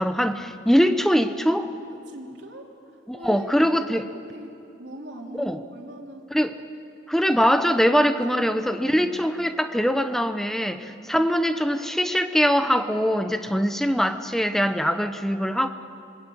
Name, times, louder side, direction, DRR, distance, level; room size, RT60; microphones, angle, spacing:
voice 1, 0.0-1.7 3.1-4.0 5.3-5.6 6.3-6.5 7.1-15.7, equal, ahead, 8 dB, 1.0 m, -22 dB
voice 2, 2.1-6.3 7.9-9.2 11.0-11.3, equal, 70° right, -1 dB, 3.5 m, -42 dB
26.0 x 22.0 x 8.7 m, 2.6 s
head